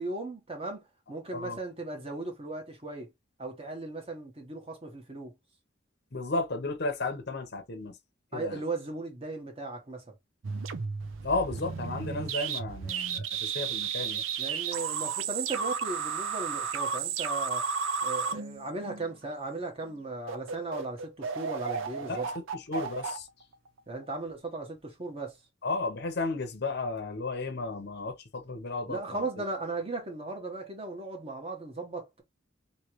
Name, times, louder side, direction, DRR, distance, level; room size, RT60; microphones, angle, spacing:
voice 1, 0.0-3.1 3.4-5.3 8.3-10.1 14.4-17.7 18.0-22.3 23.9-25.4 28.9-32.2, right 3 dB, 30° right, 1.2 m, -37 dB
voice 2, 6.1-7.9 8.3-8.6 11.2-14.2 22.0-22.2 22.7-23.3 25.6-29.2, left 3 dB, 55° left, 0.8 m, -33 dB
sound 1, 10.4-19.3 19.8-20.0 20.3-24.2, right 6 dB, 80° right, 0.6 m, -33 dB
3.1 x 2.9 x 3.0 m
head